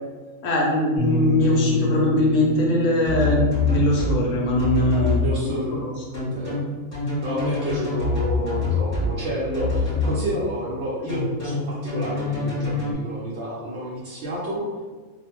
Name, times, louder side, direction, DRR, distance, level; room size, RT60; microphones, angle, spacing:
voice 1, 0.4-5.3 5.7-5.9, left 1 dB, 70° left, -2 dB, 0.9 m, -21 dB
sound 1, 1.0-6.7, left 2 dB, 15° right, 0.7 m, -29 dB
sound 2, 3.0-4.2 4.6-5.2 6.1-9.1 9.5-10.2 11.1-12.9, left 3 dB, 25° left, 1.3 m, -25 dB
voice 2, 5.2-5.8 6.3-6.6 7.2-14.8, equal, 65° right, -6 dB, 0.7 m, -29 dB
2.4 x 2.0 x 2.9 m, 1.4 s
omnidirectional pair, 1.4 m